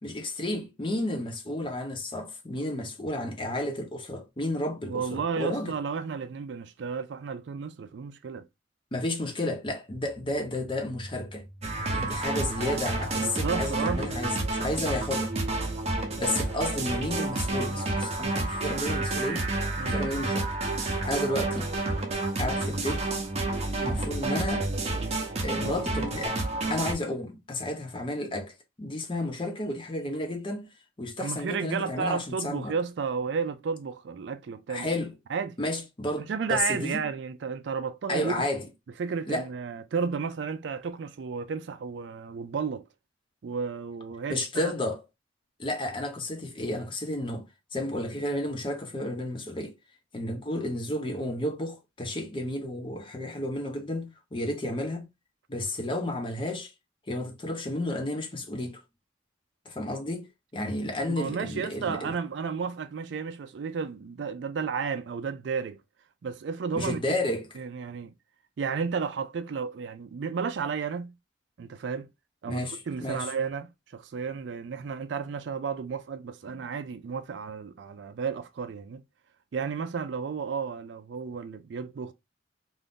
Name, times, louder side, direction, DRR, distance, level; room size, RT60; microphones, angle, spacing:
voice 1, 0.0-5.7 8.9-11.4 11.9-15.3 16.2-19.5 19.9-20.5 21.1-21.7 22.4-23.0 23.8-24.7 25.4-26.4 26.7-30.7 31.0-32.7 34.7-35.1 35.6-37.0 38.1-38.7 39.3-39.5 44.3-45.0 45.6-47.5 47.7-49.8 50.1-55.1 55.5-56.7 57.1-58.8 59.7-62.1 66.7-67.5 72.5-73.3, left 1 dB, 25° left, 0.6 m, -32 dB
voice 2, 4.9-8.5 13.2-14.1 19.8-20.0 31.2-35.0 35.3-35.6 36.3-38.4 39.0-42.9 43.4-44.7 61.2-65.8 66.2-67.0 67.6-68.1 68.6-71.1 71.6-72.1 72.4-79.0 79.5-82.1, right 5 dB, 65° right, 0.4 m, -32 dB
sound 1, 9.9-17.7, equal, 5° left, 1.0 m, -43 dB
sound 2, 11.6-26.9, right 2 dB, 35° right, 0.7 m, -30 dB
2.6 x 2.5 x 3.5 m
head